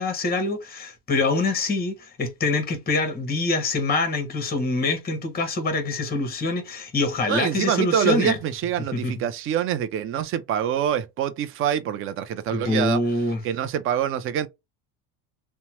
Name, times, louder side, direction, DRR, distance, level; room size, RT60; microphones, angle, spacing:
voice 1, 0.0-8.4 8.9-9.1 12.5-13.4, left 3 dB, 20° left, 1.0 m, -25 dB
voice 2, 7.3-13.0 13.4-14.5, right 9 dB, 30° right, 0.4 m, -25 dB
2.9 x 2.1 x 2.8 m
supercardioid pair, 115°, 45 cm